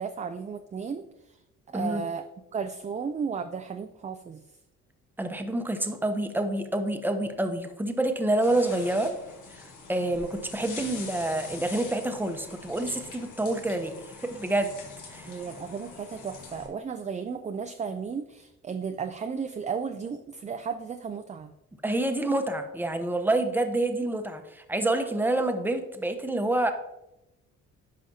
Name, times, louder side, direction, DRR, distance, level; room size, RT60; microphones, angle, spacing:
voice 1, 0.0-1.4 1.7-2.2 2.5-4.5 15.3-21.5, right 6 dB, 25° right, 7 dB, 0.4 m, -34 dB
voice 2, 5.2-9.1 9.5-13.9 14.2-14.7 15.1-15.3 21.8-26.7, right 1 dB, 5° right, 6 dB, 0.8 m, -27 dB
sound 1, 8.4-16.7, left 4 dB, 80° left, 1.6 m, -44 dB
9.8 x 5.6 x 2.8 m, 0.90 s
cardioid pair, 90°, 30 cm